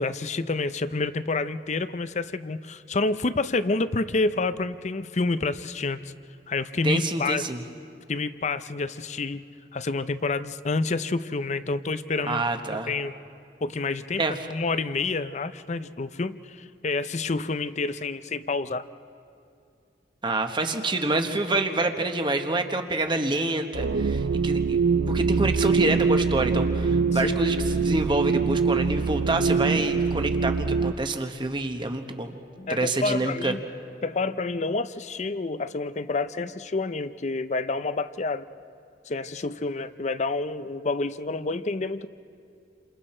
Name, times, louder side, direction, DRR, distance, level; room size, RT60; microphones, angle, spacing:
voice 1, 0.0-6.1 6.5-7.5 8.1-9.4 9.7-12.5 12.7-13.1 13.6-18.9 27.1-27.4 32.6-33.6 34.0-38.5 39.1-42.1, left 3 dB, 40° left, 13 dB, 0.6 m, -28 dB
voice 2, 6.8-7.6 12.3-12.9 14.2-14.3 20.2-24.8 25.1-32.4 32.7-33.5, right 2 dB, 25° right, 6 dB, 1.2 m, -27 dB
sound 1, 23.7-30.9, right 5 dB, 70° right, 0.5 m, -24 dB
29.5 x 27.0 x 4.4 m, 2.5 s
head